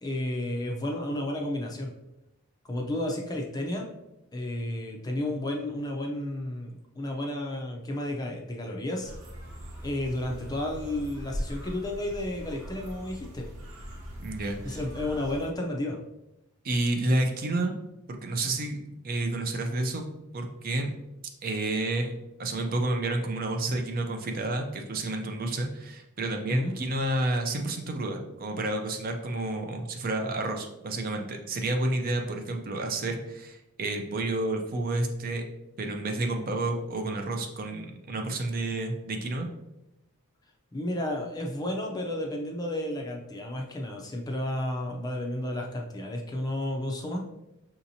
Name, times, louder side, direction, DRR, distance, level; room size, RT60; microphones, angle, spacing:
voice 1, 0.0-1.9 2.6-3.9 4.3-9.1 9.8-13.5 14.6-16.0 26.5-26.7 40.7-47.3, left 1 dB, 15° left, 0 dB, 0.4 m, -32 dB
sound 1, 9.0-15.5, equal, 65° right, 1.0 m, -40 dB
voice 2, 14.2-14.8 16.6-17.7 18.1-20.1 20.3-20.9 21.4-22.1 22.4-35.4 35.8-39.5, right 2 dB, 40° right, 4 dB, 0.4 m, -30 dB
5.7 x 2.8 x 2.7 m, 0.92 s
head